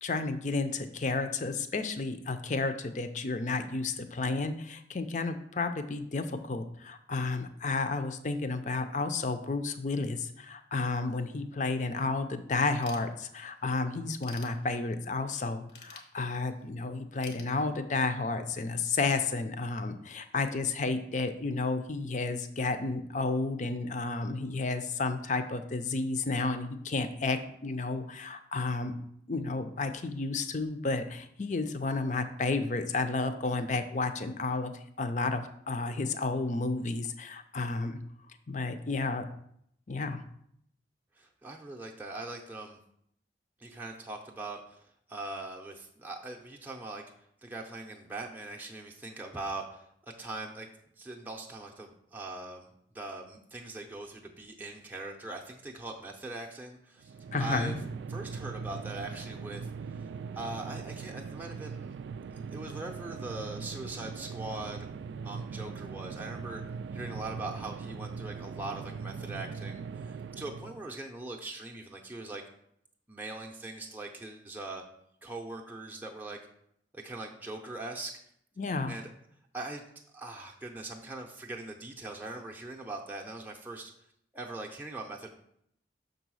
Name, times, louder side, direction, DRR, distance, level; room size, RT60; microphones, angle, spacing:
voice 1, 0.0-28.9 29.3-34.7 35.0-38.0 38.5-39.3 39.9-40.2 57.3-57.7 78.6-78.9, left 3 dB, 45° left, 9 dB, 0.6 m, -32 dB
Ratchet pawl / Tools, 12.8-13.6 14.0-15.1 15.7-16.7 17.2-18.2, left 5 dB, 80° left, 1.1 m, -49 dB
voice 2, 41.2-42.8 43.6-47.0 47.4-50.7 51.0-57.1 57.4-57.7 58.1-60.1 60.4-62.0 62.5-64.9 65.2-66.6 66.9-72.4 73.1-74.8 75.2-76.4 76.9-78.2 78.9-79.1 79.5-79.8 80.1-83.9 84.3-85.3, right 2 dB, 10° right, -1 dB, 0.6 m, -41 dB
sound 1, 57.0-70.9, right 5 dB, 80° right, 0.3 m, -40 dB
6.1 x 4.0 x 6.2 m, 0.71 s
head